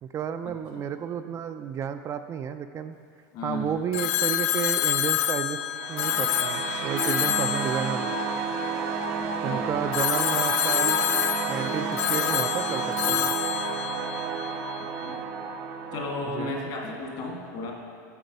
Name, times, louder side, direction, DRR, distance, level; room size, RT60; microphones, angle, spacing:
voice 1, 0.0-3.0 3.4-5.6 5.9-8.1 9.4-11.0 11.5-13.3 16.2-16.5, right 8 dB, 30° right, 8 dB, 0.4 m, -32 dB
voice 2, 3.3-3.8 9.2-9.7 15.0-15.2 15.9-17.7, left 2 dB, 55° left, 0 dB, 2.0 m, -34 dB
Telephone, 3.9-9.2 9.9-14.8, left 12 dB, 70° left, 0.4 m, -28 dB
sound 1, 5.6-16.6, right 5 dB, 65° right, 0.8 m, -31 dB
8.0 x 5.9 x 5.4 m, 2.3 s
supercardioid pair, 110°, 10 cm